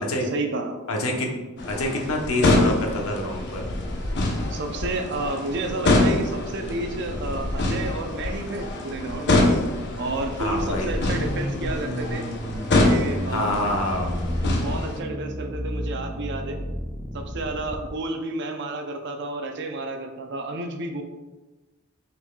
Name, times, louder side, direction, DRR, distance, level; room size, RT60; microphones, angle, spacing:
voice 1, 0.0-0.8 4.5-9.4 10.0-12.2 12.8-13.6 14.4-16.6 17.1-21.0, right 2 dB, 55° right, 5 dB, 0.6 m, -31 dB
voice 2, 0.9-1.4 1.7-3.6 10.4-10.9 13.3-14.1, left 1 dB, 85° left, 1 dB, 0.9 m, -26 dB
sound 1, 1.6-15.0, left 2 dB, 55° left, 0.8 m, -25 dB
sound 2, 11.1-17.9, equal, 5° right, 0.3 m, -32 dB
5.8 x 4.1 x 2.3 m, 1.1 s
head